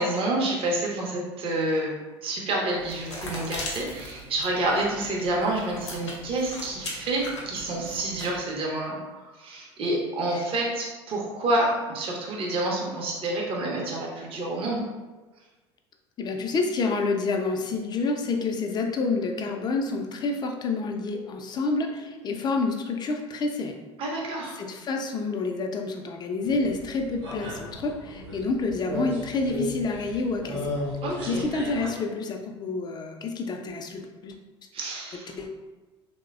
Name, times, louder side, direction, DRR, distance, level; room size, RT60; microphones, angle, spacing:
voice 1, 0.0-14.8 24.0-24.6 31.0-31.5 34.7-35.4, right 2 dB, 40° right, -2 dB, 0.6 m, -28 dB
sound 1, 2.8-8.4, left 1 dB, 80° left, 0.6 m, -39 dB
voice 2, 16.2-23.8 24.6-30.7 31.3-34.3 35.3-35.5, left 3 dB, 30° left, 3 dB, 0.4 m, -28 dB
sound 2, 26.4-31.9, left 1 dB, 80° right, 0.8 m, -35 dB
3.1 x 2.1 x 2.3 m, 1.3 s
figure-of-eight pair, 65°, 15 cm